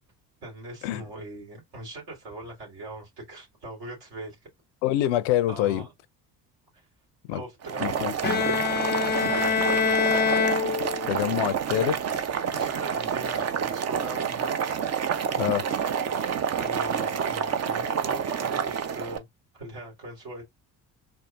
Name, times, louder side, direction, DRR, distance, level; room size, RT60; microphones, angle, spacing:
voice 1, 0.4-4.4 5.5-5.9 7.3-8.1 8.4-8.7 9.2-10.3 11.7-12.0 12.5-14.8 16.6-19.3 19.5-20.4, right 2 dB, 65° right, 3.0 m, -40 dB
voice 2, 4.8-5.9 7.3-7.4 7.8-8.1 11.1-12.0 15.4-15.6, left 13 dB, 65° left, 0.7 m, -25 dB
Boiling, 7.6-19.2, right 7 dB, 35° right, 0.6 m, -28 dB
Bowed string instrument, 8.2-11.4, left 6 dB, 20° left, 0.5 m, -25 dB
4.6 x 2.4 x 2.4 m
figure-of-eight pair, 50°, 47 cm